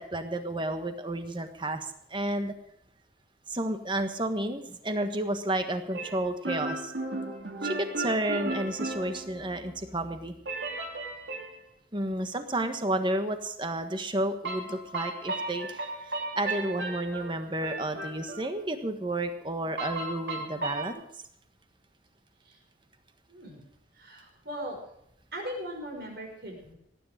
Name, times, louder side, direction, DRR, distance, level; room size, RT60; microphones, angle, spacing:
voice 1, 0.0-2.5 3.5-6.9 7.6-10.3 11.9-21.0, right 1 dB, 25° right, 7 dB, 1.4 m, -31 dB
sound 1, 5.9-9.8 10.4-11.6 14.4-18.5 19.8-20.9, right 2 dB, 80° right, 2.8 m, -35 dB
voice 2, 23.3-23.6 23.9-24.8 25.3-26.8, equal, 60° right, 1 dB, 5.8 m, -39 dB
18.5 x 10.0 x 5.1 m, 0.75 s
head